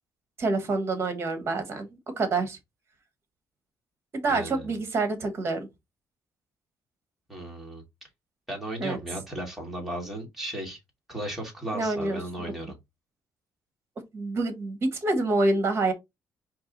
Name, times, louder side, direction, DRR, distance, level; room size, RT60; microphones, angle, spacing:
voice 1, 0.4-2.6 4.1-5.7 8.8-9.0 11.7-12.5 14.1-15.9, right 2 dB, 35° right, 1.3 m, -27 dB
voice 2, 4.3-4.7 7.3-7.8 8.5-10.8 11.1-12.8, right 1 dB, 5° right, 1.9 m, -35 dB
4.6 x 2.9 x 3.9 m
cardioid pair, 160°, 7 cm